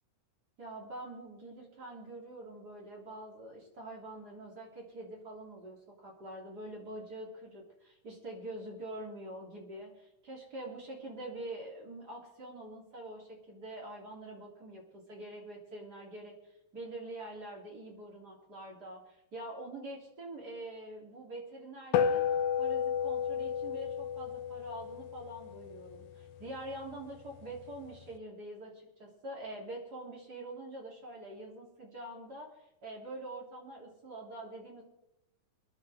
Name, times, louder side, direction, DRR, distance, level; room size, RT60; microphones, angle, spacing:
voice 1, 0.6-16.3 16.7-22.3 22.6-34.8, right 1 dB, 30° right, -2 dB, 3.6 m, -45 dB
sound 1, 21.9-26.6, left 8 dB, 80° left, 2.5 m, -32 dB
25.0 x 11.0 x 3.7 m, 0.85 s
omnidirectional pair, 4.0 m